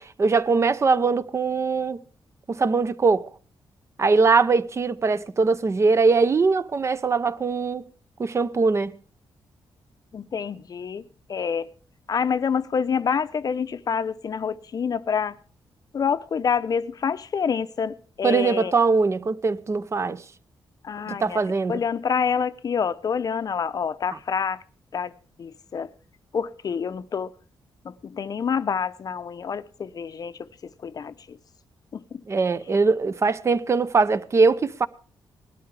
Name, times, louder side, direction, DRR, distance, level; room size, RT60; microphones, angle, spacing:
voice 1, 0.0-2.0 2.5-3.3 4.0-7.8 8.2-9.0 18.2-20.2 21.1-21.8 32.3-34.9, right 4 dB, 35° right, 0.7 m, -21 dB
voice 2, 10.1-11.0 11.3-11.7 12.1-15.4 15.9-18.7 20.8-21.4 21.7-24.6 24.9-25.1 25.4-25.9 26.3-27.3 27.8-30.3 30.8-31.4 31.9-32.2, left 6 dB, 45° left, 0.7 m, -27 dB
19.0 x 12.5 x 3.3 m
wide cardioid pair, 135°, 9 cm